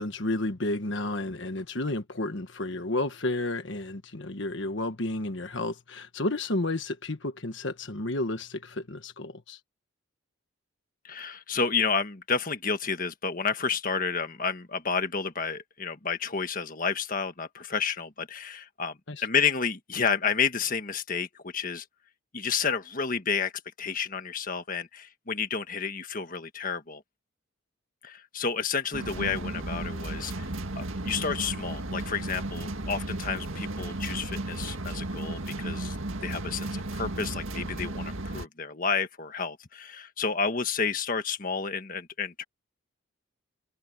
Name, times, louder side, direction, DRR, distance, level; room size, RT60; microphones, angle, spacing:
voice 1, 0.0-9.6 19.1-19.2, left 2 dB, 60° left, 1.4 m, -31 dB
voice 2, 11.0-21.8 22.3-23.5 23.8-27.0 28.0-30.5 30.7-36.0 36.2-42.4, left 5 dB, 40° left, 1.6 m, -30 dB
sound 1, 28.9-38.5, right 2 dB, 75° right, 2.0 m, -34 dB
open air
head